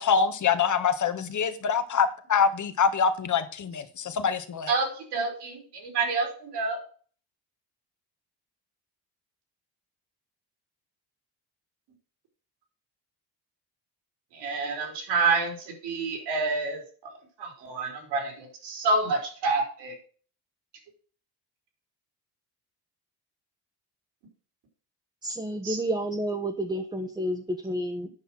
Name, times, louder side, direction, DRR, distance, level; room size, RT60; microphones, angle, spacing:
voice 1, 0.0-4.8, left 6 dB, 45° left, 1.4 m, -25 dB
voice 2, 4.7-5.6 5.9-6.8 14.4-15.5 15.8-16.8 17.4-19.9 25.6-25.8, right 4 dB, 80° right, 4.2 m, -28 dB
voice 3, 25.2-28.1, right 1 dB, 10° right, 1.2 m, -30 dB
9.5 x 5.6 x 6.1 m
cardioid pair, 95°, 40 cm